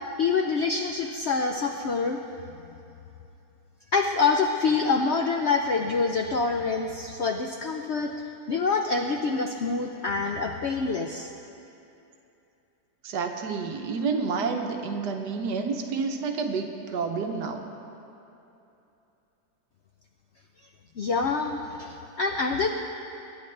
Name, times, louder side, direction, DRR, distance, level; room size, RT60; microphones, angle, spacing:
voice 1, 0.2-2.2 3.9-8.1 8.5-11.3 21.0-22.7, left 4 dB, 70° left, 3 dB, 0.6 m, -26 dB
voice 2, 13.0-17.6, right 5 dB, 75° right, 4 dB, 1.5 m, -29 dB
22.0 x 9.9 x 3.3 m, 2.8 s
omnidirectional pair, 1.8 m